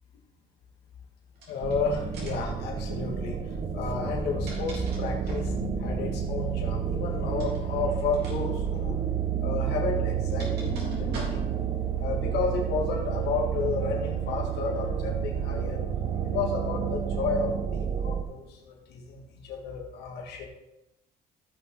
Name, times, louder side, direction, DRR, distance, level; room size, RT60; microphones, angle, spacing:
sound 1, 1.3-1.7 2.1-2.5 4.0-5.5 7.3-7.6 8.1-8.4 8.6-8.8 9.7-11.7, right 2 dB, 75° right, 3.6 m, -45 dB
voice 1, 1.5-9.0 9.4-20.5, left 5 dB, 75° left, -1 dB, 2.0 m, -32 dB
sound 2, 1.6-18.2, right 8 dB, 40° right, 1.0 m, -30 dB
sound 3, 10.1-13.3, equal, 20° right, 3.1 m, -42 dB
15.5 x 5.7 x 3.9 m, 0.92 s
cardioid pair, 110°, 17 cm